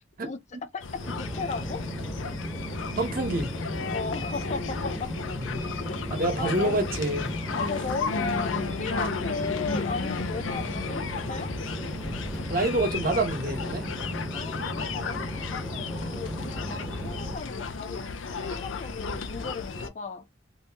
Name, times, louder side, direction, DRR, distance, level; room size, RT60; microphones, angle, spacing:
voice 1, 0.7-1.9 3.9-5.1 5.8-6.0 6.4-6.8 7.5-11.6 14.3-20.2, left 4 dB, 40° left, 0.5 m, -36 dB
sound 1, 0.8-19.9, left 4 dB, 80° left, 0.6 m, -34 dB
sound 2, 1.0-17.4, equal, ahead, 0.8 m, -36 dB
voice 2, 3.0-3.5 5.3-5.6 6.1-7.3 12.5-13.9, right 2 dB, 50° right, 1.0 m, -27 dB
2.8 x 2.7 x 3.4 m
head